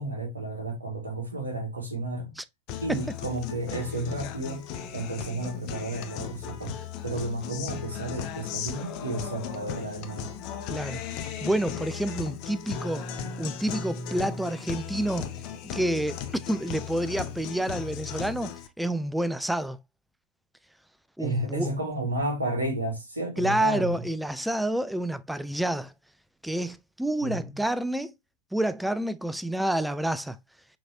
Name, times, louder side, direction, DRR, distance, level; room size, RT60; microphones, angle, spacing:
voice 1, 0.0-2.3 2.8-4.7 4.9-6.7 7.0-10.3 21.2-24.0 27.2-27.6, right 2 dB, 80° right, 1.5 m, -32 dB
Guitar, 2.7-18.7, left 8 dB, 40° left, 0.7 m, -36 dB
voice 2, 10.7-11.0 11.4-13.1 13.4-15.3 15.6-18.5 18.8-19.8 21.2-21.7 23.4-25.9 26.4-28.1 28.5-30.4, right 1 dB, 5° right, 0.3 m, -28 dB
6.2 x 3.0 x 2.7 m
figure-of-eight pair, 90°, 0 cm